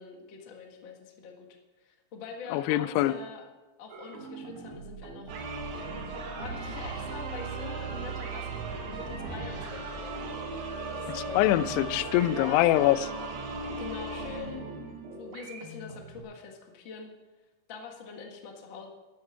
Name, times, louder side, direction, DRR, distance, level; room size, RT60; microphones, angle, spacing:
voice 1, 0.0-1.5 1.8-3.5 3.8-5.4 6.2-10.2 10.9-11.5 12.1-12.6 13.8-14.6 15.1-17.1 17.7-18.9, left 5 dB, 60° left, 2 dB, 1.2 m, -44 dB
voice 2, 2.5-3.1 11.1-13.1, left 15 dB, 85° left, 16 dB, 2.6 m, -24 dB
sound 1, 3.9-16.2, right 4 dB, 85° right, 4.1 m, -44 dB
sound 2, 5.3-15.2, right 3 dB, 60° right, 2.4 m, -37 dB
12.0 x 8.6 x 7.7 m, 1.2 s
omnidirectional pair, 4.8 m